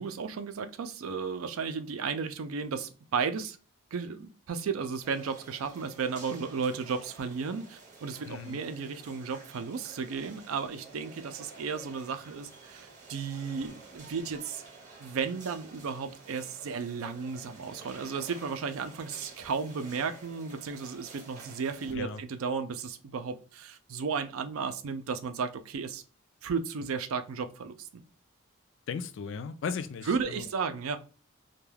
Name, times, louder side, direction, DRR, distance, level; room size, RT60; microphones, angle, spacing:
voice 1, 0.0-3.6 3.9-14.6 15.0-26.0 26.4-28.0 30.1-31.0, right 5 dB, 90° right, 0.4 m, -34 dB
sound 1, 5.0-21.9, right 4 dB, 35° right, 0.7 m, -51 dB
voice 2, 8.3-8.6 21.9-22.2 28.9-30.4, left 5 dB, 60° left, 0.3 m, -36 dB
2.2 x 2.2 x 3.1 m
head